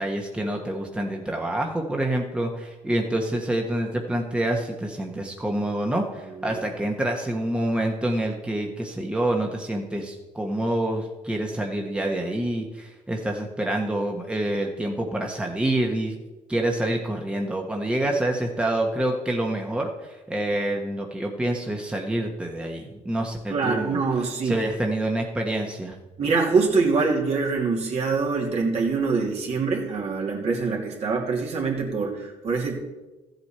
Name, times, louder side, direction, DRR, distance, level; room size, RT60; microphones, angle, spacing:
voice 1, 0.0-16.2 16.5-24.0 24.4-26.0, right 1 dB, 10° right, 1 dB, 1.2 m, -27 dB
voice 2, 23.5-24.6 26.2-32.8, right 4 dB, 55° right, -1 dB, 2.6 m, -24 dB
14.0 x 7.9 x 4.4 m, 1.1 s
supercardioid pair, 80°, 13 cm